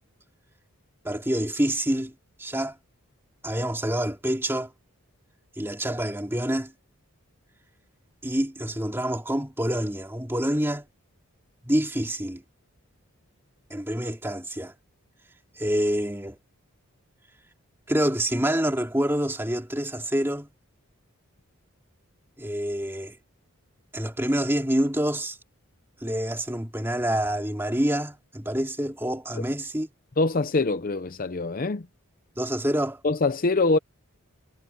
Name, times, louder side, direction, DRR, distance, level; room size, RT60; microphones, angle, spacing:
voice 1, 1.0-2.1 2.4-2.7 3.4-4.7 5.6-6.7 8.2-10.9 11.6-12.4 13.7-14.7 15.6-16.4 17.9-20.5 22.4-23.2 23.9-25.4 26.0-29.9 32.4-33.0, right 1 dB, 10° right, 2.6 m, -27 dB
voice 2, 30.2-31.9 33.0-33.8, left 3 dB, 40° left, 0.6 m, -24 dB
head